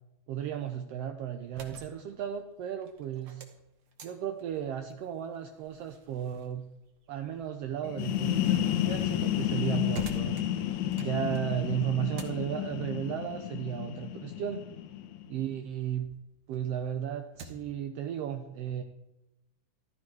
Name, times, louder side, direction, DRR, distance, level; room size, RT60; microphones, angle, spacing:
voice 1, 0.3-3.4 4.0-6.7 7.1-10.4 11.0-14.6 15.3-16.1 16.5-18.8, right 10 dB, 75° right, 6 dB, 1.4 m, -34 dB
sound 1, 1.3-16.0 16.4-17.8, right 4 dB, 55° right, 1.8 m, -52 dB
sound 2, 7.8-15.5, left 12 dB, 75° left, 2.1 m, -31 dB
14.5 x 12.5 x 4.8 m, 0.93 s
omnidirectional pair, 3.6 m